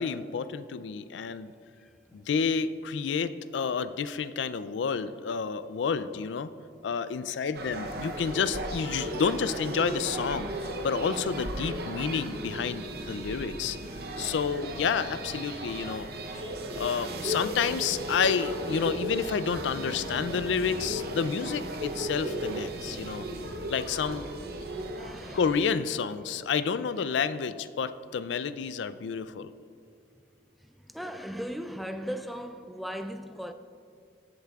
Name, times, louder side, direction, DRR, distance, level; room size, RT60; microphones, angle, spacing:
voice 1, 0.0-1.5 2.1-6.5 6.8-13.8 14.2-16.1 16.8-23.3 23.7-24.3 25.3-29.5, left 6 dB, 75° left, 0.4 m, -30 dB
sound 1, 7.5-25.9, right 1 dB, 55° right, 0.7 m, -36 dB
voice 2, 24.9-25.5 26.0-26.1 27.0-27.1 28.1-28.3 30.1-30.2 30.6-33.5, equal, ahead, 0.3 m, -38 dB
15.0 x 7.9 x 2.4 m
head